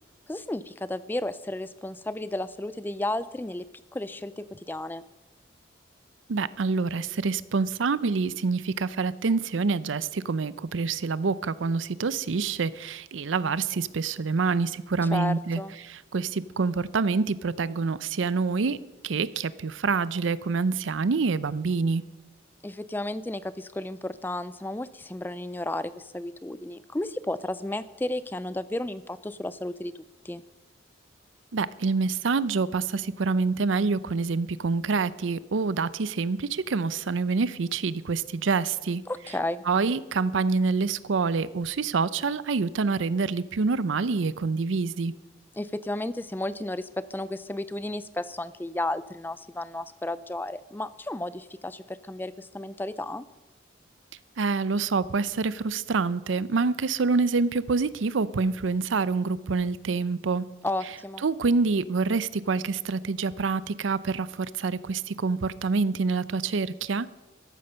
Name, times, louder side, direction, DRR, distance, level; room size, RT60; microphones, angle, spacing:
voice 1, 0.3-3.6 3.9-5.0 15.0-15.7 22.6-29.9 30.2-30.4 39.1-39.6 45.5-53.2 60.6-61.2, left 1 dB, 10° left, 15 dB, 0.3 m, -33 dB
voice 2, 6.3-15.6 15.9-18.8 19.0-22.0 31.5-39.0 39.7-45.1 54.4-60.4 61.2-67.1, right 4 dB, 85° right, 17 dB, 0.5 m, -26 dB
13.5 x 12.0 x 5.6 m, 1.1 s
head